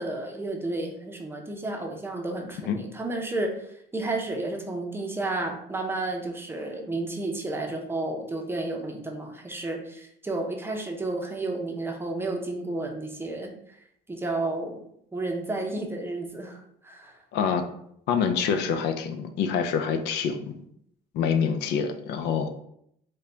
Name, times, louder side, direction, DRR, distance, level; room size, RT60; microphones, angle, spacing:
voice 1, 0.0-13.5 14.1-14.8 15.1-17.2, right 2 dB, 15° right, 1 dB, 0.6 m, -32 dB
voice 2, 17.3-17.7 18.1-20.6 21.1-22.5, left 6 dB, 80° left, 8 dB, 0.4 m, -26 dB
3.3 x 2.2 x 3.7 m, 0.72 s
cardioid pair, 110°, 17 cm